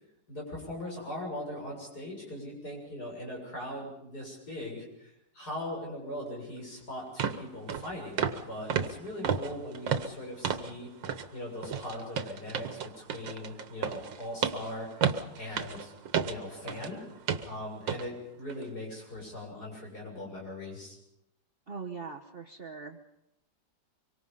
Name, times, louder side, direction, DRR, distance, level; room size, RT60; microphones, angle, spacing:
voice 1, 0.3-10.9 11.3-15.9 16.2-17.0 17.4-21.0, left 1 dB, 55° left, -1 dB, 7.5 m, -40 dB
sound 1, 6.6-6.7 7.2-7.4 7.7-7.9 8.2-8.4 8.7-10.7 11.0-11.3 11.6-16.9 17.3-17.5 17.9-18.1 18.5-18.6, right 7 dB, 90° right, 1.9 m, -32 dB
voice 2, 21.7-23.0, right 5 dB, 35° right, 2 dB, 1.2 m, -41 dB
25.0 x 23.5 x 5.5 m, 0.84 s
omnidirectional pair, 2.0 m